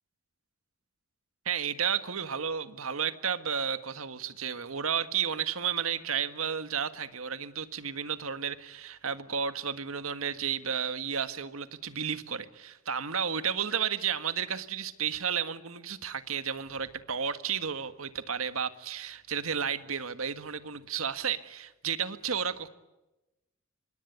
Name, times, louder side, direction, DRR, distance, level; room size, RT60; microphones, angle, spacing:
voice 1, 1.4-22.7, right 7 dB, 80° right, 11 dB, 1.7 m, -32 dB
26.0 x 23.5 x 8.3 m, 0.99 s
head